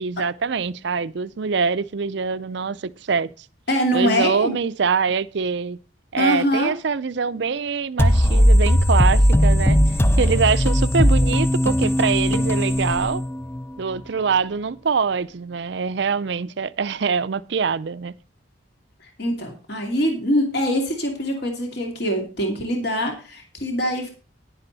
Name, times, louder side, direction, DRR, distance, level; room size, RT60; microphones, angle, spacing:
voice 1, 0.0-3.3 3.9-5.8 6.1-9.8 10.2-13.2 13.8-18.1, right 5 dB, 55° right, 0.5 m, -24 dB
voice 2, 3.7-4.5 6.2-6.7 19.0-24.1, equal, 55° left, 2.5 m, -23 dB
sound 1, 8.0-13.6, equal, 10° left, 0.5 m, -18 dB
10.5 x 9.9 x 4.0 m
head